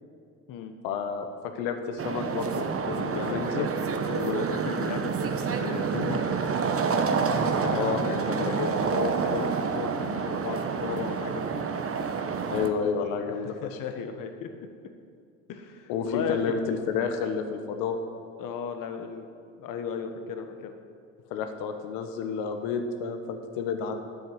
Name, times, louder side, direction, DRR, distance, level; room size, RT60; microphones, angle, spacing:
voice 1, 0.8-1.3 1.5-3.7 7.7-8.9 12.5-13.8 15.9-18.0 21.3-23.9, left 6 dB, 75° left, 6 dB, 1.2 m, -30 dB
sound 1, 2.0-12.7, right 5 dB, 35° right, 1.1 m, -28 dB
voice 2, 3.1-3.7 4.1-6.2 7.4-11.6 13.4-14.5 15.5-16.6 18.4-19.3 19.5-20.7, left 6 dB, 55° left, 7 dB, 1.3 m, -35 dB
9.2 x 8.0 x 7.8 m, 2.3 s
hypercardioid pair, 65°, 38 cm